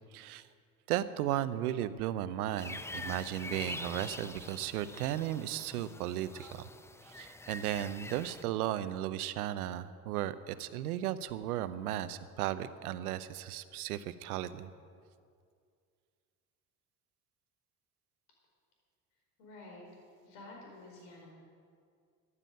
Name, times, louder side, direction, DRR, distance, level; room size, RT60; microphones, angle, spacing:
voice 1, 0.1-0.5 0.9-6.7 7.0-14.7, right 12 dB, 80° right, 14 dB, 0.7 m, -35 dB
sound 1, 2.6-8.4, left 2 dB, 5° left, 0.5 m, -45 dB
voice 2, 19.4-19.8 20.2-21.3, left 2 dB, 75° left, -1 dB, 4.7 m, -50 dB
14.0 x 9.9 x 7.6 m, 2.2 s
hypercardioid pair, 65°, 44 cm